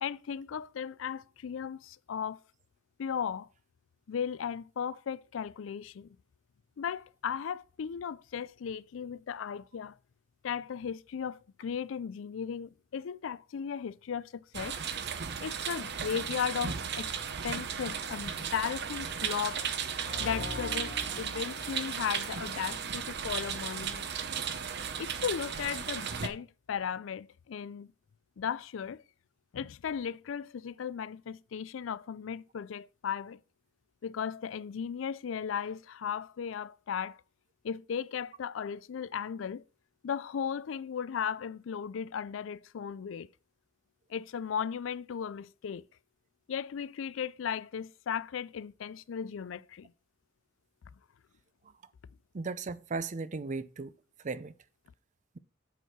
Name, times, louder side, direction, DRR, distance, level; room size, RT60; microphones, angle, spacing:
voice 1, 0.0-2.4 3.0-3.5 4.1-6.2 6.8-9.9 10.4-14.7 15.4-17.1 17.4-19.6 20.2-24.1 25.0-27.9 28.4-29.0 29.5-33.4 34.0-37.2 37.6-39.6 40.0-43.3 44.1-45.9 46.5-49.9, left 7 dB, 85° left, 0.4 m, -36 dB
sound 1, 14.5-26.3, right 7 dB, 60° right, 0.8 m, -35 dB
sound 2, 19.9-22.7, left 1 dB, 55° left, 1.5 m, -42 dB
voice 2, 52.3-53.9 54.2-54.5, right 4 dB, 40° right, 0.5 m, -36 dB
8.1 x 4.6 x 5.8 m
head